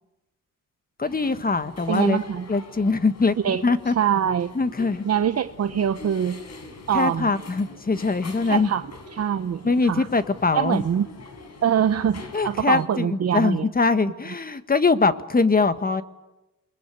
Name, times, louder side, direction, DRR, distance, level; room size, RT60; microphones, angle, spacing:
voice 1, 1.0-2.2 2.5-3.9 4.5-5.0 6.9-8.7 9.6-10.8 12.3-16.0, left 4 dB, 30° left, 12 dB, 1.5 m, -22 dB
sound 1, 1.1-12.9, left 3 dB, 55° left, 4.3 m, -43 dB
voice 2, 1.9-2.5 3.4-3.6 4.0-4.5 5.0-6.4 6.9-7.3 8.4-8.8 9.1-10.1 10.5-11.1 11.6-13.7, right 9 dB, 50° right, 10 dB, 0.9 m, -24 dB
28.0 x 22.0 x 9.3 m, 1.0 s
cardioid pair, 90°, 32 cm